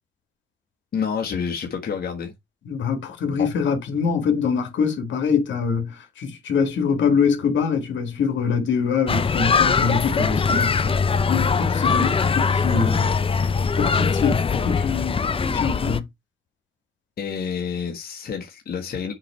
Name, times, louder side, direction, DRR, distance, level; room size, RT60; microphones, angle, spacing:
voice 1, 0.9-2.3 3.4-3.5 17.2-19.1, left 6 dB, 50° left, 1.5 m, -28 dB
voice 2, 2.7-11.0 11.3-13.1 13.8-16.1, left 6 dB, 70° left, 2.1 m, -24 dB
sound 1, 9.1-16.0, left 5 dB, 30° left, 0.6 m, -21 dB
7.6 x 3.3 x 4.3 m
cardioid pair, 90°, 20 cm